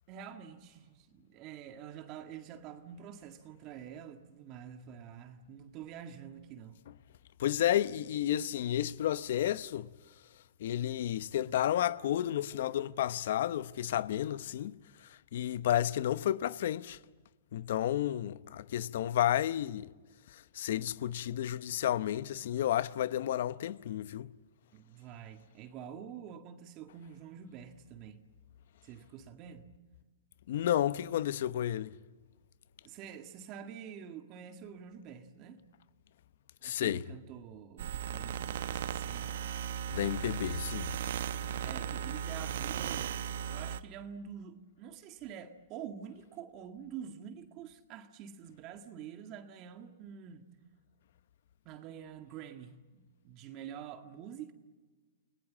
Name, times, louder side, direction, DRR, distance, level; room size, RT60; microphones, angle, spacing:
voice 1, 0.1-6.8 24.7-28.2 28.8-29.7 32.8-35.6 36.6-39.5 41.6-43.2 43.5-50.5 51.7-54.5, right 8 dB, 35° right, 1.8 m, -47 dB
voice 2, 7.4-9.9 10.6-14.8 15.3-17.0 17.5-19.9 20.3-24.3 30.5-31.9 36.6-37.0 39.9-40.9, left 11 dB, 65° left, 0.8 m, -31 dB
sound 1, 37.8-43.8, right 9 dB, 70° right, 0.9 m, -36 dB
29.5 x 20.0 x 7.4 m
hypercardioid pair, 140°, 0 cm